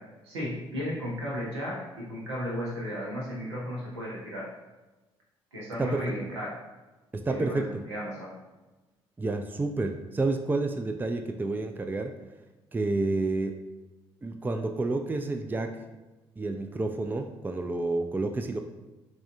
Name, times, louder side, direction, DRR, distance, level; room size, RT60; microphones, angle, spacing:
voice 1, 0.2-4.5 5.5-6.5 7.3-8.3, equal, 80° right, -5 dB, 1.1 m, -34 dB
voice 2, 7.1-7.9 9.2-12.2 12.7-13.6 14.2-15.8 16.4-18.6, right 2 dB, 15° right, 6 dB, 0.4 m, -29 dB
6.0 x 3.2 x 2.6 m, 1.1 s
figure-of-eight pair, 45°, 14 cm